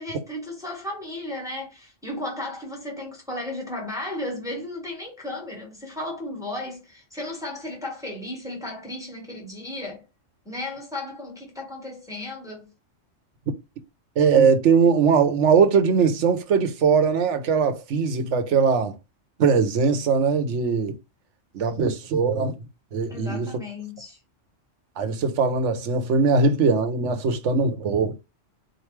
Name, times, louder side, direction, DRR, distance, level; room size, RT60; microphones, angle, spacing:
voice 1, 0.0-10.0 10.4-12.7 23.1-24.2, left 1 dB, 5° right, 1.6 m, -34 dB
voice 2, 14.2-18.9 19.4-20.9 21.5-22.6 22.9-23.5 25.0-28.2, right 5 dB, 70° right, 1.1 m, -20 dB
4.3 x 3.3 x 3.2 m
omnidirectional pair, 1.3 m